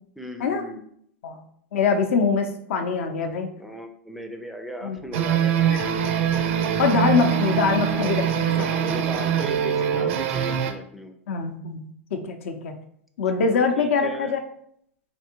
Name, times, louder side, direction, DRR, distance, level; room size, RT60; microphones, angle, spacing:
voice 1, 0.2-0.8 3.6-5.8 8.5-11.2 13.4-14.3, equal, ahead, 4 dB, 0.3 m, -37 dB
voice 2, 1.7-3.5 4.8-5.8 6.8-8.9 11.3-12.8 13.2-14.4, left 5 dB, 70° left, 6 dB, 0.5 m, -24 dB
sound 1, 5.1-10.7, right 8 dB, 65° right, 0.4 m, -23 dB
3.3 x 2.6 x 2.8 m, 0.68 s
hypercardioid pair, 115°, 7 cm